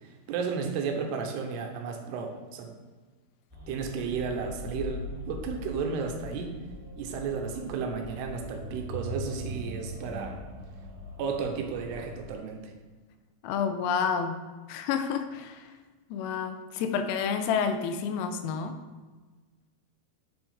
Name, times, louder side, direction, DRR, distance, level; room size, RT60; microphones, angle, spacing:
voice 1, 0.0-2.7 3.7-6.5 7.0-10.4 11.2-12.7, right 5 dB, 85° right, 4 dB, 2.7 m, -33 dB
sound 1, 3.5-12.3, left 1 dB, 20° right, 0.9 m, -41 dB
voice 2, 13.4-14.3 14.7-15.7 16.1-18.7, left 6 dB, 80° left, 8 dB, 2.6 m, -29 dB
7.7 x 6.1 x 3.5 m, 1.3 s
omnidirectional pair, 4.9 m